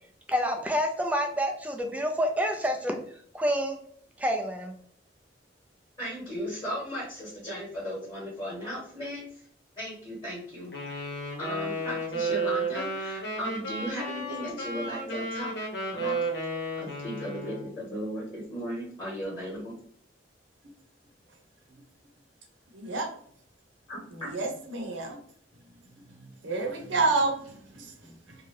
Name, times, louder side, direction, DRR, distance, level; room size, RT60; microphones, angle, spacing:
voice 1, 0.3-3.0 3.3-3.8 4.2-4.7, equal, 10° right, 3 dB, 0.4 m, -28 dB
voice 2, 6.0-9.2 9.8-11.1 11.4-15.5 15.9-16.2 16.8-19.7 23.9-24.3, equal, 25° left, -6 dB, 1.2 m, -36 dB
Wind instrument woodwind instrument, 10.7-17.7, right 2 dB, 65° left, 0.8 m, -33 dB
voice 3, 22.7-23.1 24.1-25.2 26.2-28.4, right 3 dB, 85° right, 2 dB, 0.7 m, -30 dB
2.7 x 2.2 x 3.2 m, 0.62 s
head